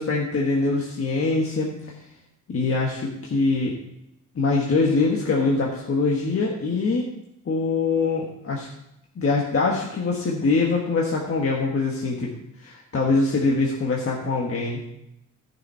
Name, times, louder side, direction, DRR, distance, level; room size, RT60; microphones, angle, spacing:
voice 1, 0.0-1.9 2.5-3.8 4.3-7.1 7.4-8.7 9.1-12.3 12.6-14.8, left 3 dB, 45° left, -2 dB, 1.5 m, -23 dB
14.0 x 6.4 x 4.4 m, 0.82 s
wide cardioid pair, 125°, 31 cm